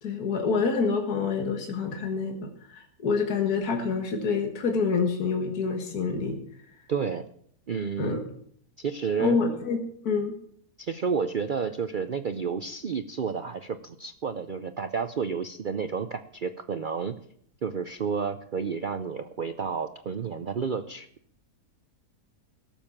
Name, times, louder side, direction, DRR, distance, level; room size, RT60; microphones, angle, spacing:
voice 1, 0.0-6.4 8.0-8.2 9.2-9.8 10.0-10.3, left 5 dB, 65° left, 3 dB, 2.1 m, -27 dB
voice 2, 6.9-7.3 7.7-8.2 8.8-9.4 10.8-17.1 17.6-21.1, right 6 dB, 80° right, 9 dB, 0.4 m, -30 dB
17.5 x 7.3 x 7.2 m, 0.64 s
omnidirectional pair, 1.7 m